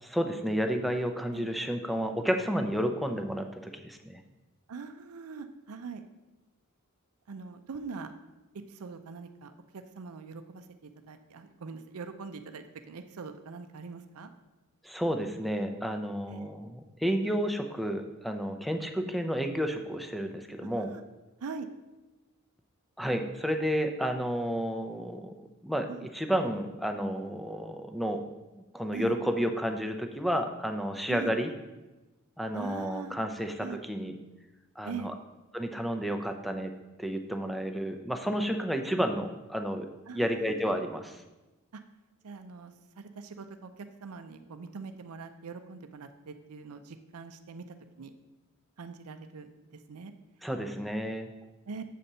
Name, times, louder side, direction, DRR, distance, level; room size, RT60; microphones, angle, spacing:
voice 1, 0.0-4.2 14.8-20.9 23.0-28.2 28.6-31.5 32.4-34.2 34.8-35.1 35.5-36.7 37.0-39.9 40.1-41.2 50.4-51.3, equal, ahead, 5 dB, 0.6 m, -31 dB
voice 2, 4.7-6.0 7.3-8.1 8.7-10.6 11.1-14.3 16.3-16.5 20.6-21.0 21.4-21.7 25.9-26.1 28.9-29.1 31.1-31.3 32.5-33.2 33.6-33.8 34.8-35.1 40.1-40.3 41.7-41.8 42.2-47.7 48.0-48.1 48.8-49.5 49.9-50.1 51.7-51.8, right 5 dB, 80° right, 8 dB, 0.5 m, -42 dB
7.4 x 4.2 x 6.7 m, 1.1 s
head